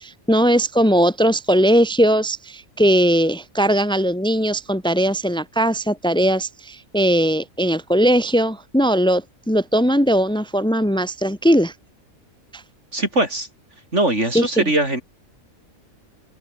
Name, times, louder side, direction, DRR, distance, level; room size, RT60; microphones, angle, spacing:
voice 1, 0.0-11.7 12.5-12.6 14.3-14.7, equal, 5° left, 2.0 m, -19 dB
voice 2, 12.9-13.5 13.9-15.0, right 1 dB, 55° right, 6.7 m, -20 dB
open air
omnidirectional pair, 1.5 m